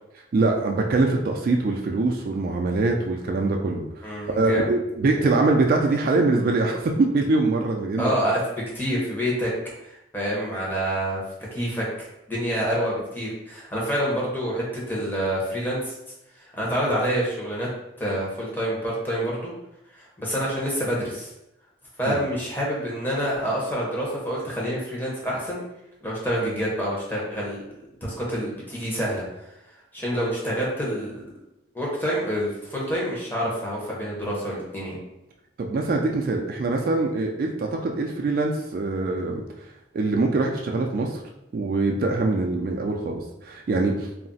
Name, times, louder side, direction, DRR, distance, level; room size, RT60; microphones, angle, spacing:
voice 1, 0.3-4.0 4.4-8.1 22.1-22.2 35.6-39.4 39.9-41.2 41.5-44.1, right 3 dB, 55° right, 2 dB, 0.3 m, -23 dB
voice 2, 4.0-4.7 8.0-9.5 9.8-11.2 11.5-15.9 16.6-17.7 18.0-19.5 19.9-21.3 22.0-25.6 26.0-27.6 28.0-29.5 29.9-31.2 31.7-35.0, equal, 10° left, -5 dB, 0.7 m, -27 dB
2.4 x 2.0 x 3.9 m, 0.88 s
head